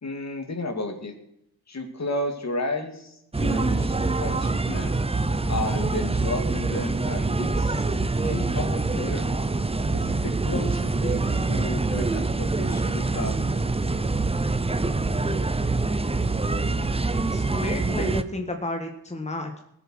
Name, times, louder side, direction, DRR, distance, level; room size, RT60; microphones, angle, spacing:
voice 1, 0.0-1.1 1.7-5.0 5.5-7.8 8.2-9.2 9.9-13.4, left 2 dB, 45° left, 5 dB, 2.6 m, -32 dB
sound 1, 3.3-18.2, right 3 dB, 15° right, 0.8 m, -25 dB
voice 2, 17.3-19.6, left 1 dB, 20° left, 4 dB, 1.6 m, -31 dB
19.5 x 7.2 x 6.3 m, 0.77 s
wide cardioid pair, 105°, 36 cm